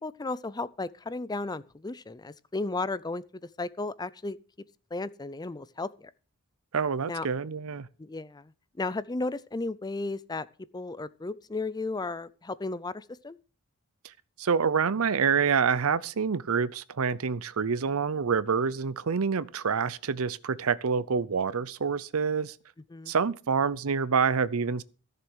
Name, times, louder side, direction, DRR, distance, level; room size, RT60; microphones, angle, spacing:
voice 1, 0.0-3.2 3.6-4.4 4.9-6.1 7.1-7.3 8.0-8.5 8.8-10.5 10.7-13.4 22.9-23.1, left 3 dB, 20° left, 0.5 m, -34 dB
voice 2, 6.7-7.9 14.4-22.6 23.1-24.8, right 6 dB, 70° right, 0.6 m, -27 dB
14.5 x 6.8 x 6.2 m
head